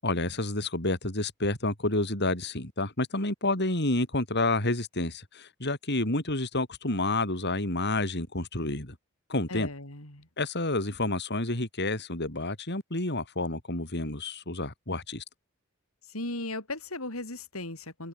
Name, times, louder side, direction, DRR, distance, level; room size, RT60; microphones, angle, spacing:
voice 1, 0.0-8.9 9.3-9.7 10.4-15.2, left 2 dB, 55° left, 7.9 m, -29 dB
voice 2, 9.5-10.3 16.1-18.1, left 2 dB, 75° left, 7.8 m, -37 dB
open air
head